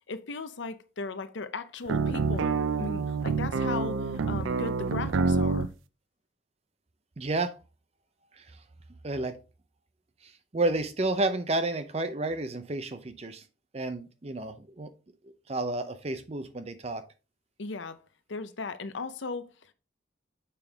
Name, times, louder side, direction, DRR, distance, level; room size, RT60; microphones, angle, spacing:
voice 1, 0.1-5.7 17.6-18.0 18.3-19.7, left 3 dB, 70° left, 0.7 m, -37 dB
sound 1, 1.9-5.7, right 4 dB, 90° right, 0.5 m, -27 dB
voice 2, 7.2-7.5 8.4-8.5 9.0-9.4 10.2-13.4 13.7-14.9 15.5-17.0, right 2 dB, 30° right, 0.6 m, -31 dB
6.8 x 5.3 x 3.4 m
head